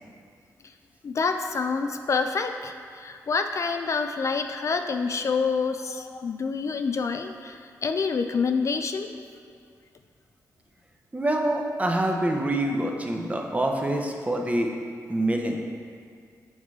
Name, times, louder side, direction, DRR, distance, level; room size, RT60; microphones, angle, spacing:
voice 1, 1.0-9.1, left 5 dB, 50° left, 7 dB, 0.3 m, -27 dB
voice 2, 11.1-14.7 15.1-15.6, right 1 dB, 20° right, 2 dB, 0.8 m, -26 dB
7.3 x 3.0 x 4.8 m, 2.2 s
cardioid pair, 55°, 7 cm